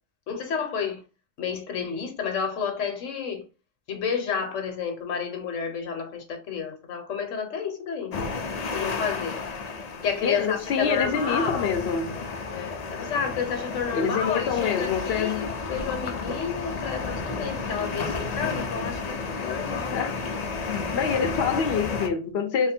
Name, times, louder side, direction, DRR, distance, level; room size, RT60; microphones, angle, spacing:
voice 1, 0.3-1.0 1.4-3.4 3.9-8.2 8.7-9.4 10.0-11.8 12.5-20.0, left 6 dB, 80° left, 1.2 m, -31 dB
sound 1, 8.1-22.1, left 4 dB, 45° left, 0.5 m, -32 dB
voice 2, 10.2-12.1 13.9-15.5 18.4-18.5 19.9-20.2 20.7-22.7, left 6 dB, 60° left, 0.9 m, -26 dB
3.6 x 2.2 x 4.2 m
omnidirectional pair, 1.3 m